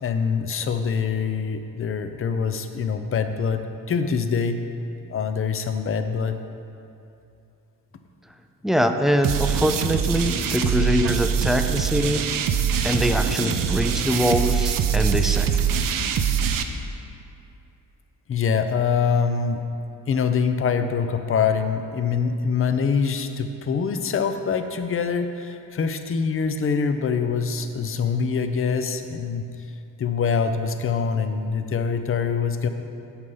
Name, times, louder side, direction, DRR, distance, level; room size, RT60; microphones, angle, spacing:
voice 1, 0.0-4.6 5.1-6.4 18.3-19.6 20.1-29.5 30.0-32.7, left 6 dB, 40° left, 8 dB, 0.6 m, -24 dB
voice 2, 8.6-12.3 12.8-15.6, equal, ahead, 6 dB, 0.4 m, -23 dB
sound 1, 9.2-16.6, right 7 dB, 75° right, 0.7 m, -23 dB
8.2 x 6.5 x 5.5 m, 2.6 s
cardioid pair, 105°, 34 cm